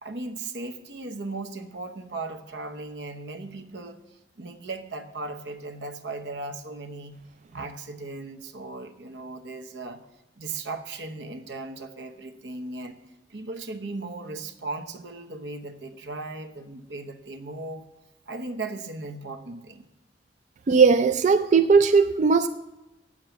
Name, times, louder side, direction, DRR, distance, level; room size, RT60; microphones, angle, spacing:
voice 1, 0.0-7.2 7.5-10.0 10.4-13.0 13.3-17.9 18.3-19.8, right 3 dB, 80° right, 0.9 m, -37 dB
voice 2, 20.7-22.5, right 5 dB, 45° right, 0.4 m, -18 dB
9.0 x 7.5 x 8.2 m
head